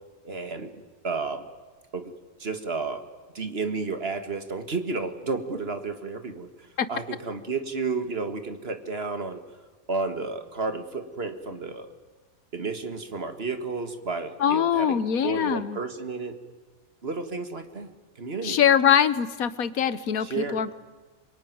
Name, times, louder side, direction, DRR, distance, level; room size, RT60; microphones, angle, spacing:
voice 1, 0.2-1.5 1.9-2.1 2.4-3.0 3.3-9.4 9.9-11.9 12.5-16.4 17.0-17.9 18.2-18.6 20.2-20.7, right 4 dB, 45° right, 8 dB, 1.9 m, -32 dB
voice 2, 14.4-15.8 18.4-20.7, left 8 dB, 80° left, 14 dB, 1.5 m, -23 dB
27.0 x 22.5 x 9.5 m, 1.3 s
omnidirectional pair, 1.5 m